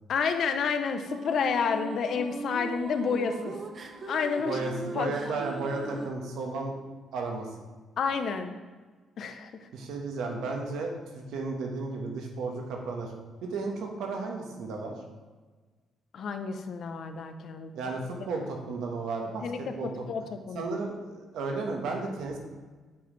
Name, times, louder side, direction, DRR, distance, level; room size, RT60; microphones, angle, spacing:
voice 1, 0.1-3.5 4.1-4.6 4.9-5.4 8.0-8.5 9.2-9.5 16.1-17.7 19.4-19.7 20.1-20.7, left 6 dB, 60° left, 7 dB, 0.6 m, -30 dB
sound 1, 1.1-6.1, right 4 dB, 40° right, 0.6 m, -38 dB
voice 2, 4.4-6.7 7.1-7.5 9.7-13.1 13.4-14.9 17.7-19.9 20.5-22.4, right 3 dB, 85° right, 1 dB, 1.1 m, -34 dB
8.2 x 4.1 x 3.1 m, 1.4 s
cardioid pair, 115°, 0 cm